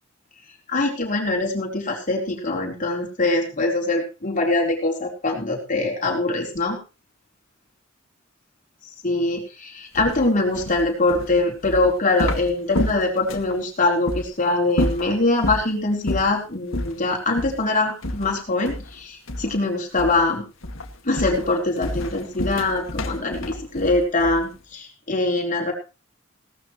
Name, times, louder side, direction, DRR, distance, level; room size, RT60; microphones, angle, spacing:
voice 1, 0.7-6.8 9.0-20.5 21.0-25.7, left 2 dB, 40° left, 1 dB, 4.4 m, -23 dB
sound 1, 9.9-13.6 14.1-14.2 14.7-15.7 16.1-16.4 16.7-17.0 17.4-17.6 18.0-19.0 19.3-19.6 20.0-20.3 20.6-24.6, left 1 dB, 85° left, 2.1 m, -29 dB
18.0 x 12.5 x 3.2 m, 0.32 s
head